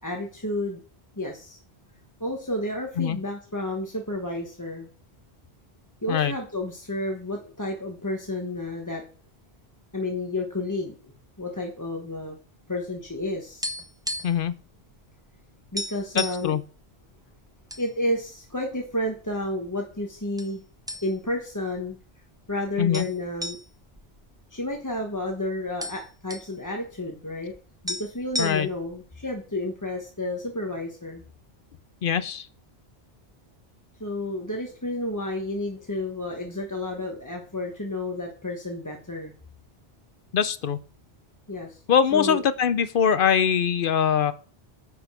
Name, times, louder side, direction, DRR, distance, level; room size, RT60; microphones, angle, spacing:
voice 1, 0.0-0.8 1.2-1.6 2.2-4.9 6.0-9.0 9.9-12.4 12.7-13.7 15.7-16.6 17.8-20.6 21.0-22.0 22.5-23.6 24.5-27.5 27.8-31.2 34.0-39.3 41.5-41.8 42.1-42.4, left 1 dB, 20° left, 1 dB, 1.2 m, -31 dB
sound 1, 13.5-14.5 14.8-15.0 15.3-15.4 15.8-16.5 17.2-17.9 18.2-18.4 19.1-19.7 20.4-20.5 20.9-21.4 21.8-21.9 22.9-25.0 25.3-25.4 25.6-26.5 27.5-27.6 27.9-28.9, equal, 5° right, 0.4 m, -34 dB
voice 2, 14.2-14.5 16.2-16.6 22.8-23.0 28.4-28.7 32.0-32.5 40.3-40.8 41.9-44.3, left 8 dB, 60° left, 13 dB, 0.8 m, -22 dB
9.8 x 5.2 x 6.1 m, 0.40 s
omnidirectional pair, 1.1 m